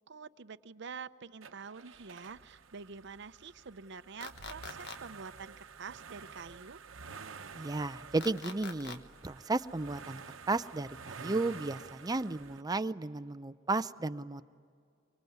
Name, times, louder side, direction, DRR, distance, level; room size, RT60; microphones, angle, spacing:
voice 1, 0.1-6.8, right 5 dB, 65° right, 14 dB, 0.7 m, -47 dB
sound 1, 1.4-12.6, right 5 dB, 90° right, 0.9 m, -50 dB
sound 2, 4.2-5.0 8.2-9.0, left 5 dB, 60° left, 1.4 m, -43 dB
voice 2, 7.6-14.4, right 3 dB, 20° right, 12 dB, 0.6 m, -34 dB
25.0 x 24.5 x 9.4 m, 2.3 s
head